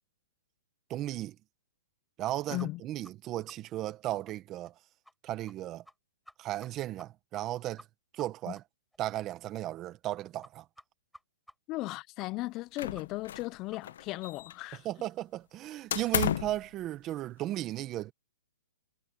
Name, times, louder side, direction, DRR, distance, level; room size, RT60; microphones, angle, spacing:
voice 1, 0.9-1.3 2.2-4.7 5.2-5.8 6.4-7.8 8.1-8.6 9.0-10.7 14.8-18.1, right 14 dB, 25° right, 1.5 m, -35 dB
voice 2, 2.5-2.8 8.5-8.6 11.7-14.9, left 20 dB, 30° left, 0.5 m, -36 dB
sound 1, 2.6-2.7 3.0-3.1 3.5-3.6 3.9-4.0 4.3-4.4 4.6-4.7 5.0-5.1 5.5-5.6 5.9-6.0 6.3-6.7 7.0-7.1 7.3-7.4 7.8-7.9 8.2-8.3 8.5-8.6 8.9-9.0 9.3-9.4 9.7-9.8 10.0-10.1 10.4-10.5 10.8-10.9 11.1-11.2 11.5-11.6 11.8-11.9 12.2-12.3 12.6-12.7 12.9-13.0 13.3-13.4 13.7-13.8 14.1-14.2, equal, ahead, 5.1 m, -53 dB
sound 2, 12.8-13.6 13.8-14.8 15.9-16.6, left 10 dB, 65° left, 1.0 m, -33 dB
hypercardioid pair, 150°, 0 cm